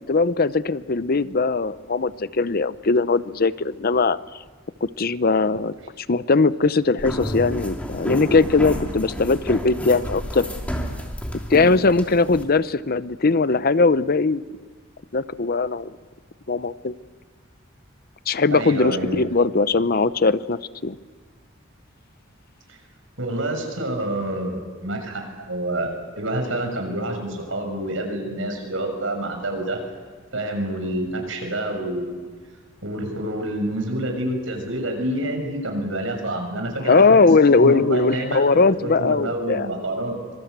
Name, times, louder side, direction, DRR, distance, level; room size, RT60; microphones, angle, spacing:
voice 1, 0.0-4.2 4.8-10.5 11.5-14.5 15.1-15.9 16.5-16.9 18.3-21.0 36.8-39.7, left 3 dB, 50° left, 15 dB, 0.7 m, -20 dB
sound 1, 7.0-12.4, equal, 5° left, 3.1 m, -30 dB
voice 2, 18.5-19.2 23.2-29.8 30.3-32.2 32.8-37.0 37.5-40.2, right 1 dB, 80° right, 4 dB, 6.4 m, -27 dB
25.5 x 24.5 x 8.2 m, 1.5 s
head